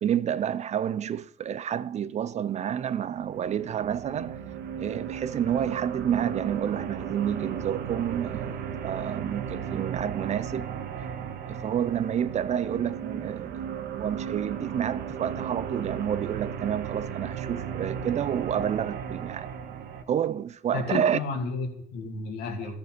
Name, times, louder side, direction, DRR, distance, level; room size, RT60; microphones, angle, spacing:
voice 1, 0.0-4.4 4.8-10.7 11.5-13.6 13.9-19.5 20.1-21.2, right 9 dB, 40° right, 0.5 m, -29 dB
sound 1, 3.0-20.0, right 8 dB, 70° right, 1.3 m, -35 dB
voice 2, 20.7-22.8, left 4 dB, 85° left, 2.5 m, -32 dB
13.0 x 6.7 x 5.1 m
cardioid pair, 110°, 17 cm